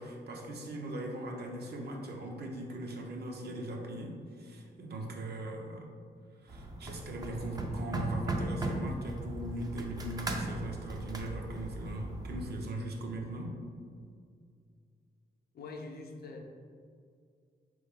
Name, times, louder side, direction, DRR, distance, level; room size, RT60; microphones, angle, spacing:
voice 1, 0.0-5.8 6.4-13.5, right 1 dB, 65° right, 0 dB, 0.6 m, -39 dB
sound 1, 6.5-12.5, right 1 dB, 20° right, 0.4 m, -37 dB
voice 2, 15.5-16.4, left 3 dB, 60° left, 2 dB, 0.5 m, -44 dB
4.2 x 3.1 x 3.6 m, 2.3 s
wide cardioid pair, 170°, 18 cm